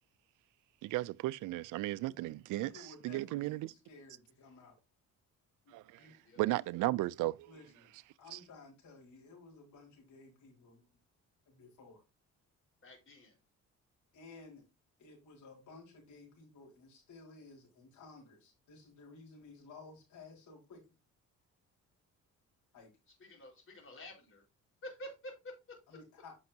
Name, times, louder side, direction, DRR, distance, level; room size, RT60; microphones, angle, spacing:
voice 1, 0.8-3.7 5.7-6.0 6.4-7.5 8.3-8.4, right 18 dB, 85° right, 0.5 m, -35 dB
voice 2, 2.5-4.8 5.6-6.1 7.5-7.9 8.2-10.8 11.5-12.0 14.1-14.6 15.0-20.8 22.7-22.9 25.9-26.4, left 3 dB, 80° left, 4.7 m, -55 dB
voice 3, 12.8-13.4 23.2-24.4 24.8-25.8, equal, 45° left, 4.6 m, -49 dB
9.4 x 6.3 x 2.8 m
cardioid pair, 90°, 30 cm